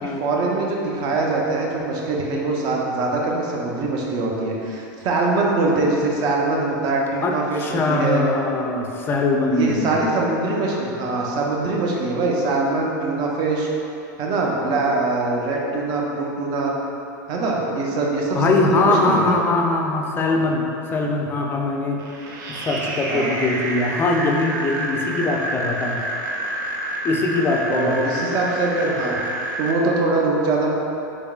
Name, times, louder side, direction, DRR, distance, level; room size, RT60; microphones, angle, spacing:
voice 1, 0.0-8.2 9.5-13.7 14.2-16.7 17.3-19.4 23.1-23.3 27.7-29.2 29.6-30.8, right 3 dB, 45° right, -2 dB, 0.6 m, -23 dB
voice 2, 7.2-10.0 18.3-22.0 22.5-26.0 27.0-28.2, left 2 dB, 20° left, 1 dB, 0.4 m, -22 dB
sound 1, 22.0-29.7, right 1 dB, 85° right, 0.5 m, -28 dB
3.6 x 3.5 x 2.3 m, 2.8 s
supercardioid pair, 130°, 10 cm